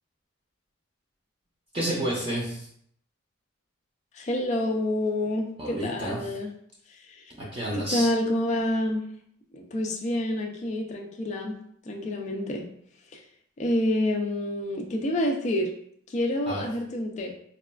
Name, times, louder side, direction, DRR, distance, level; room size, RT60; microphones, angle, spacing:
voice 1, 1.7-2.6 5.6-6.2 7.4-8.1 16.5-16.6, right 1 dB, 25° right, -5 dB, 0.6 m, -30 dB
voice 2, 4.1-6.5 6.9-7.2 7.7-9.1 9.5-11.6 11.9-12.7 13.1-13.2 13.6-15.7 16.1-17.3, left 1 dB, 35° left, 1 dB, 0.3 m, -28 dB
4.0 x 2.3 x 2.2 m, 0.66 s
head